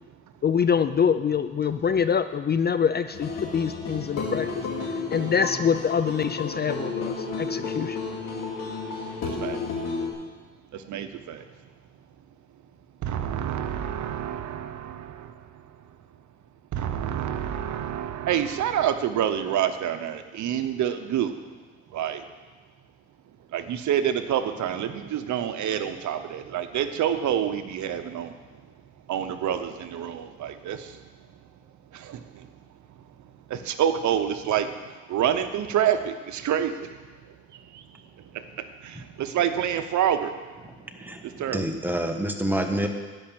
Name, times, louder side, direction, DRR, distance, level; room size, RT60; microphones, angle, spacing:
voice 1, 0.4-4.6 5.1-8.0, left 7 dB, 35° left, 12 dB, 0.4 m, -25 dB
sound 1, 3.1-10.1, left 4 dB, 60° left, 2.3 m, -32 dB
voice 2, 9.2-9.6 10.7-11.4 13.0-15.3 16.7-21.3 21.9-22.2 23.5-28.3 29.1-30.9 31.9-32.5 33.5-34.7 35.1-36.9 37.7-37.8 38.8-40.3 41.4-41.6, right 9 dB, 70° right, 9 dB, 0.9 m, -27 dB
voice 3, 40.6-42.9, right 1 dB, 5° right, 4 dB, 1.3 m, -28 dB
12.0 x 5.5 x 8.7 m, 1.3 s
cardioid pair, 90°, 30 cm